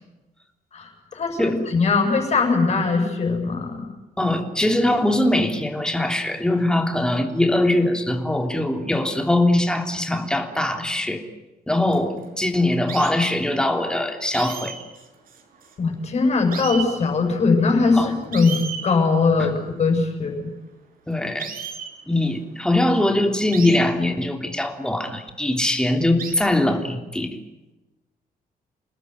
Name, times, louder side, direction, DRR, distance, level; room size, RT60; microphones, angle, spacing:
voice 1, 0.7-3.9 15.8-20.4, left 4 dB, 45° left, 4 dB, 7.7 m, -21 dB
voice 2, 4.2-11.2 11.7-14.7 17.9-18.1 19.4-19.5 21.1-21.5 22.1-27.4, left 1 dB, 5° left, 4 dB, 3.2 m, -22 dB
sound 1, 11.9-12.2 12.9-13.1 14.3-15.9 16.2-16.3 16.5-16.9 17.9-18.0 18.3-18.9 21.4-21.9 23.5-23.8 24.9-25.0 26.2-26.3, right 7 dB, 70° right, 6.6 m, -33 dB
29.5 x 20.0 x 9.6 m, 1.0 s
cardioid pair, 150°, 16 cm